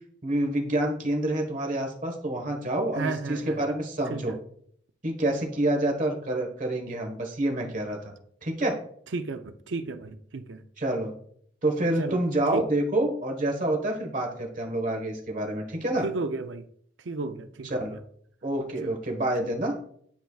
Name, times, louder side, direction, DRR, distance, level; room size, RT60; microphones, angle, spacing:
voice 1, 0.2-4.4 5.0-8.1 8.4-8.8 10.8-11.1 11.6-16.0 17.8-17.9 18.4-19.7, right 1 dB, 45° right, 1.4 m, -27 dB
voice 2, 3.0-3.6 4.1-4.4 9.1-10.6 12.0-12.2 12.5-12.6 16.0-16.7 17.0-18.0 18.8-18.9, right 3 dB, 80° right, 0.6 m, -33 dB
10.5 x 4.5 x 2.4 m
head